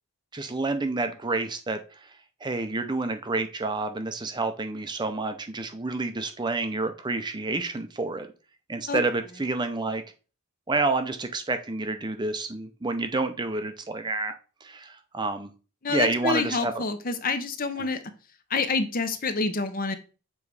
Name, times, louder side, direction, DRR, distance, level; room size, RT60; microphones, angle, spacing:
voice 1, 0.3-2.2 2.4-8.3 8.7-10.0 10.7-14.4 14.6-15.5 15.9-16.8 17.8-17.9, right 3 dB, 20° right, 8 dB, 0.5 m, -29 dB
voice 2, 15.8-18.0 18.5-20.0, left 4 dB, 40° left, 10 dB, 0.7 m, -27 dB
7.2 x 3.1 x 4.8 m, 0.35 s
head